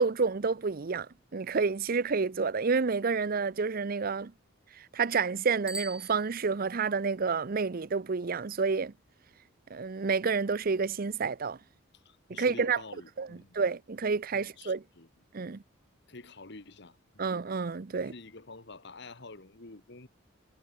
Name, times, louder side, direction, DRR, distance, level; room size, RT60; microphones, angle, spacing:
voice 1, 0.0-4.3 4.7-8.9 9.7-11.6 12.3-12.8 13.2-14.8 15.3-15.6 17.2-18.1, right 4 dB, 50° right, 0.6 m, -29 dB
Bicycle bell, 5.6-7.0, right 2 dB, 5° right, 0.4 m, -43 dB
voice 2, 11.9-13.6 14.3-15.1 16.1-17.3 17.9-20.1, left 3 dB, 60° left, 1.8 m, -48 dB
head